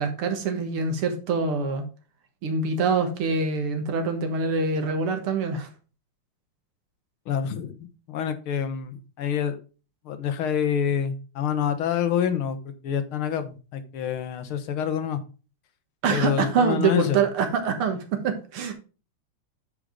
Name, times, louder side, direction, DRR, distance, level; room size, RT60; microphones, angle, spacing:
voice 1, 0.0-1.8 2.4-5.7 16.0-18.7, right 5 dB, 85° right, 6 dB, 2.3 m, -25 dB
voice 2, 7.3-9.6 10.1-15.2 16.1-17.2, left 8 dB, 75° left, 10 dB, 1.9 m, -27 dB
9.0 x 5.0 x 5.0 m, 0.34 s
omnidirectional pair, 2.4 m